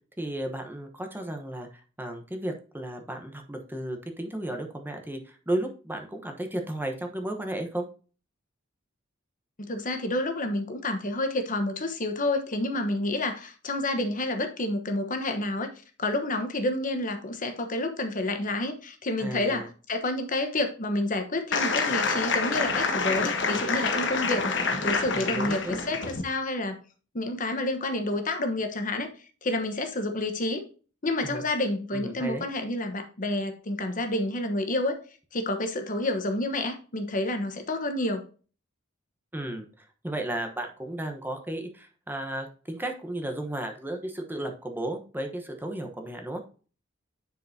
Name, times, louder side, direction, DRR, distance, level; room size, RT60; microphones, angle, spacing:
voice 1, 0.2-7.9 19.2-19.7 25.1-25.8 31.2-31.4 31.9-32.5 39.3-46.4, right 1 dB, 10° right, 4 dB, 1.0 m, -34 dB
voice 2, 9.6-15.7 16.0-26.8 27.1-29.1 29.4-30.6 31.0-35.0 35.3-38.2, left 1 dB, 45° left, 7 dB, 1.1 m, -29 dB
sound 1, 21.5-26.2, left 4 dB, 65° left, 1.4 m, -27 dB
9.8 x 4.9 x 2.8 m, 0.37 s
head